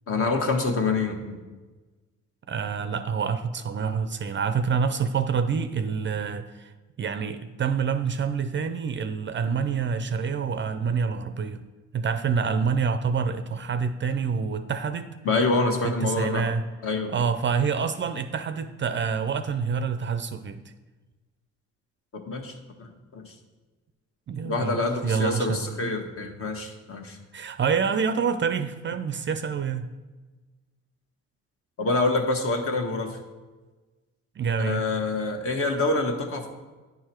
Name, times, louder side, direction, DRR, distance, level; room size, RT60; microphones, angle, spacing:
voice 1, 0.1-1.4 15.2-16.5 16.8-17.1 22.1-22.5 22.8-23.3 24.4-27.2 31.8-33.2 34.6-36.5, left 3 dB, 45° left, 3 dB, 1.3 m, -26 dB
voice 2, 2.5-6.7 7.0-11.6 11.9-15.1 15.8-16.6 17.1-20.6 24.3-25.7 27.3-29.9 34.4-34.8, right 6 dB, 40° right, 10 dB, 0.5 m, -27 dB
9.8 x 4.7 x 4.4 m, 1.3 s
cardioid pair, 90°, 30 cm